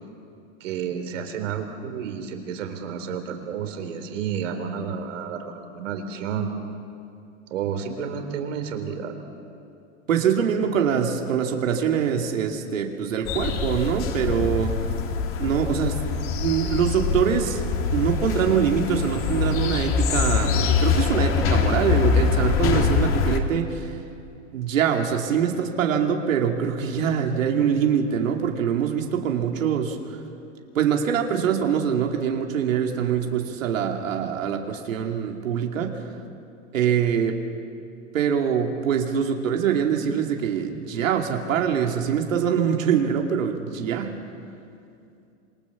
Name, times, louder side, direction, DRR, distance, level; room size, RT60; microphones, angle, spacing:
voice 1, 0.6-6.5 7.5-9.1, right 7 dB, 70° right, 6 dB, 3.8 m, -31 dB
voice 2, 10.1-14.9 15.4-17.6 17.9-24.0 24.5-30.2 30.7-36.1 36.7-37.4 38.1-44.1, right 8 dB, 85° right, 2 dB, 2.6 m, -24 dB
sound 1, 13.2-23.4, left 6 dB, 35° left, 2.3 m, -24 dB
27.0 x 22.5 x 7.3 m, 2.5 s
hypercardioid pair, 135°, 38 cm